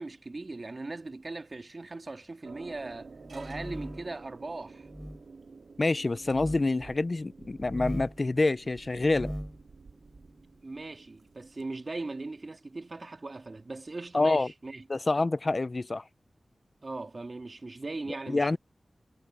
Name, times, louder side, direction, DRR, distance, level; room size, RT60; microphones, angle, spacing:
voice 1, 0.0-4.9 10.6-14.8 16.8-18.6, right 3 dB, 50° right, 2.3 m, -39 dB
sound 1, 2.4-11.6, right 4 dB, 80° right, 2.0 m, -51 dB
sound 2, 3.1-4.1 4.8-5.2 6.2-6.6 7.5-8.2 8.9-9.6, equal, 5° right, 3.3 m, -39 dB
voice 2, 5.8-9.3 14.1-14.5 14.9-16.0 18.3-18.6, left 2 dB, 45° left, 0.6 m, -27 dB
wide cardioid pair, 55°, 0 cm